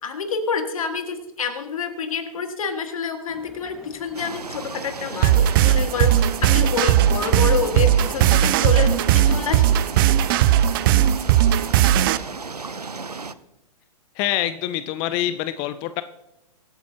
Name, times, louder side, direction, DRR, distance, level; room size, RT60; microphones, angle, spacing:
voice 1, 0.0-9.7, left 6 dB, 60° left, 7 dB, 1.8 m, -27 dB
sound 1, 3.3-9.8, right 1 dB, ahead, 1.7 m, -45 dB
sound 2, 4.1-13.3, right 4 dB, 90° right, 0.6 m, -34 dB
sound 3, 5.2-12.2, right 11 dB, 35° right, 0.5 m, -17 dB
voice 2, 14.2-16.0, left 13 dB, 25° left, 13 dB, 0.4 m, -25 dB
23.5 x 8.3 x 2.8 m, 0.91 s
figure-of-eight pair, 115°, 20 cm